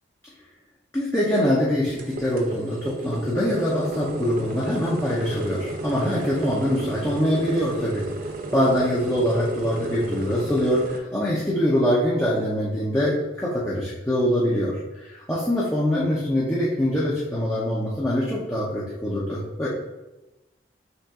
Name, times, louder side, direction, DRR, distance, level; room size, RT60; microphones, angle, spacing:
voice 1, 0.9-8.0 8.5-19.7, equal, 15° left, -7 dB, 0.7 m, -24 dB
sound 1, 1.9-11.0, right 2 dB, 50° right, 0.5 m, -33 dB
5.5 x 2.5 x 3.6 m, 1.0 s
head